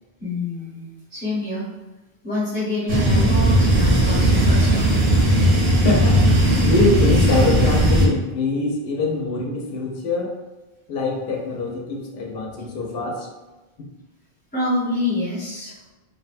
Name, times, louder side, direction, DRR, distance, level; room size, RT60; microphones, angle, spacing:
voice 1, 0.2-1.7 2.2-4.9 14.5-15.7, left 2 dB, 10° left, -12 dB, 0.9 m, -27 dB
sound 1, 2.9-8.1, right 1 dB, 85° right, 1.0 m, -17 dB
voice 2, 5.8-6.2 6.6-10.3 10.9-13.3, left 3 dB, 70° left, 0 dB, 0.8 m, -23 dB
2.5 x 2.1 x 2.5 m, 1.1 s
omnidirectional pair, 1.1 m